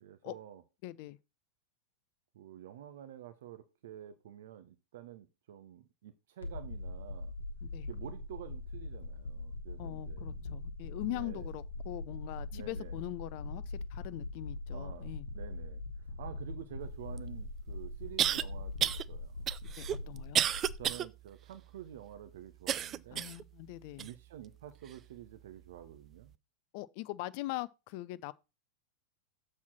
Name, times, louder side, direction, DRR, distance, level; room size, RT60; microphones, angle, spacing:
voice 1, 0.0-0.6 2.3-7.3 7.9-10.3 11.0-11.5 12.5-13.0 14.7-19.5 19.9-20.1 20.8-23.3 24.0-26.3, right 11 dB, 55° right, 0.7 m, -49 dB
voice 2, 0.8-1.2 7.6-7.9 9.8-13.6 13.9-15.2 19.8-20.4 23.1-24.1 26.7-28.3, left 17 dB, 45° left, 0.4 m, -41 dB
sound 1, 6.4-20.9, left 2 dB, 70° left, 1.3 m, -42 dB
sound 2, 17.2-17.3 18.2-18.4 18.8-19.0 19.5-21.1 21.5-21.6 22.7-23.4 24.0-24.1 24.9-25.0, right 10 dB, 30° right, 0.4 m, -31 dB
7.1 x 4.3 x 6.0 m
figure-of-eight pair, 90°, 0 cm